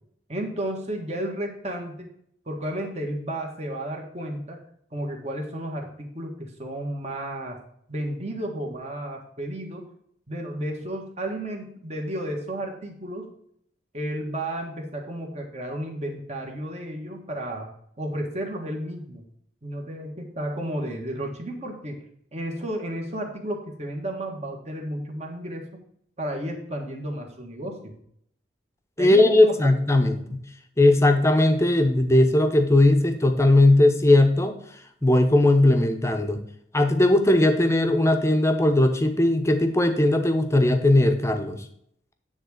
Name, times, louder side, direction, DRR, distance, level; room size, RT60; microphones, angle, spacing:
voice 1, 0.3-2.1 2.5-4.6 4.9-7.6 7.9-9.9 10.3-13.3 13.9-17.7 18.0-19.2 19.6-22.0 22.3-25.8 26.2-28.0 29.0-29.6, right 1 dB, 35° right, 1 dB, 1.7 m, -32 dB
voice 2, 29.0-30.4 30.8-34.5 35.0-36.4 36.7-41.6, left 1 dB, 15° left, 6 dB, 0.9 m, -19 dB
9.4 x 3.6 x 6.5 m, 0.69 s
head